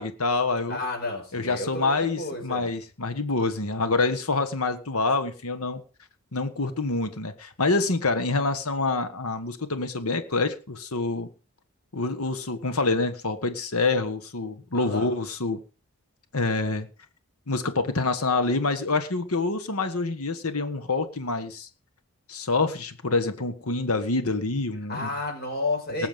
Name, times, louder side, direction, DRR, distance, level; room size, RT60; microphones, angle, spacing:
voice 1, 0.0-0.8 1.3-5.8 6.3-11.3 11.9-15.6 16.3-16.9 17.5-21.7 22.3-25.1 26.0-26.1, left 3 dB, 80° left, 8 dB, 1.5 m, -26 dB
voice 2, 0.7-2.7 14.7-15.1 24.9-26.1, left 2 dB, 45° left, 3 dB, 5.3 m, -31 dB
19.5 x 7.2 x 5.3 m, 0.36 s
head